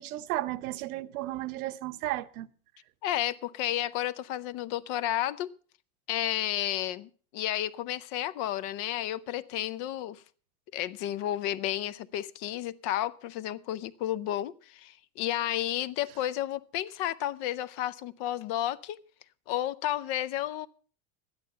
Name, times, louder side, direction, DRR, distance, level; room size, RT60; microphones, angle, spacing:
voice 1, 0.0-2.5, right 16 dB, 80° right, 0.9 m, -34 dB
voice 2, 3.0-5.5 6.1-10.2 10.7-19.0 19.5-20.7, left 12 dB, 50° left, 0.7 m, -32 dB
12.5 x 10.5 x 5.5 m
supercardioid pair, 140°, 43 cm